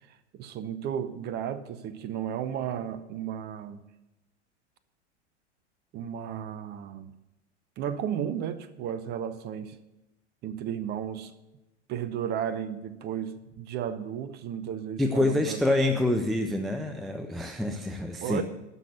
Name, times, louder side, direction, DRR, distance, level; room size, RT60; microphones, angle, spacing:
voice 1, 0.0-3.8 5.9-7.1 7.8-9.8 10.4-11.3 11.9-15.6 18.2-18.4, right 9 dB, 30° right, 0.8 m, -34 dB
voice 2, 15.0-18.4, left 1 dB, ahead, 0.4 m, -26 dB
12.5 x 6.0 x 8.1 m
figure-of-eight pair, 95°, 36 cm